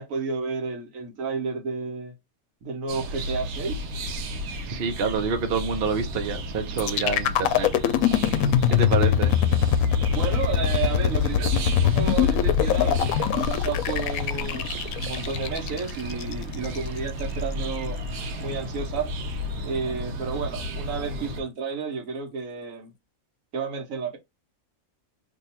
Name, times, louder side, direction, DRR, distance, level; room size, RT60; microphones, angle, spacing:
voice 1, 0.0-2.1 2.6-3.8 9.0-9.2 10.1-14.7 14.9-18.0 18.4-19.1 19.6-22.9 23.5-24.2, right 5 dB, 70° right, 1.3 m, -31 dB
sound 1, 2.9-21.4, equal, 90° right, 1.2 m, -33 dB
voice 2, 4.7-7.7 8.7-9.3, right 5 dB, 55° right, 0.8 m, -27 dB
sound 2, 6.8-16.8, left 9 dB, 80° left, 1.0 m, -23 dB
3.0 x 2.3 x 4.1 m
omnidirectional pair, 1.5 m